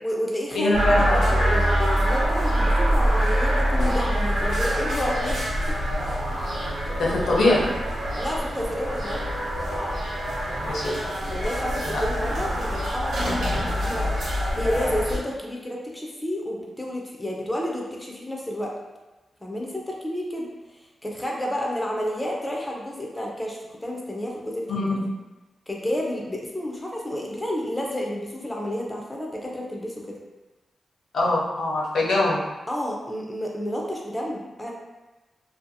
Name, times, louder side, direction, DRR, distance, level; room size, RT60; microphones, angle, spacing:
voice 1, 0.0-5.4 5.7-5.8 6.5-7.2 8.0-9.2 11.3-14.1 14.6-18.7 19.4-20.5 21.0-24.8 25.7-30.2 32.7-34.7, left 1 dB, 10° left, -1 dB, 0.4 m, -30 dB
voice 2, 0.5-1.5 7.0-7.6 10.6-11.0 11.9-12.0 24.7-25.0 31.1-32.4, left 2 dB, 90° left, -4 dB, 0.6 m, -22 dB
sound 1, 0.7-15.2, equal, 80° right, 0.8 m, -25 dB
2.5 x 2.3 x 2.6 m, 1.1 s
wide cardioid pair, 145°, 0 cm